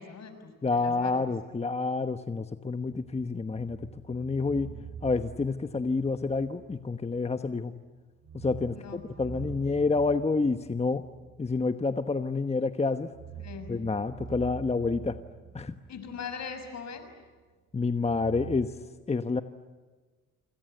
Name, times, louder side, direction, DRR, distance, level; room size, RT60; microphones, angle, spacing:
voice 1, 0.0-1.2 8.7-9.5 13.4-13.8 15.9-17.1, left 6 dB, 60° left, 8 dB, 6.4 m, -41 dB
voice 2, 0.6-4.7 5.0-7.7 8.3-11.0 11.4-13.1 13.7-15.2 15.5-15.8 17.7-18.7 19.1-19.4, left 3 dB, 20° left, 9 dB, 1.1 m, -28 dB
sound 1, 2.8-7.5 7.7-7.9 8.2-12.4 12.9-17.2 18.0-18.7, right 8 dB, 70° right, 6.7 m, -46 dB
27.5 x 26.5 x 8.0 m, 1.3 s
cardioid pair, 90°, 30 cm